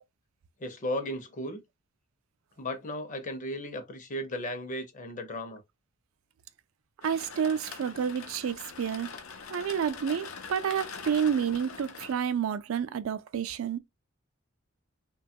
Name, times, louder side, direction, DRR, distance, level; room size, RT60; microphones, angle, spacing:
voice 1, 0.6-1.6 2.6-5.6 9.1-9.2, left 1 dB, 40° left, 0.6 m, -35 dB
sound 1, 7.0-12.1, left 5 dB, 80° left, 0.6 m, -43 dB
voice 2, 7.0-9.1 9.5-13.8, right 7 dB, 70° right, 0.4 m, -29 dB
2.9 x 2.3 x 2.6 m
head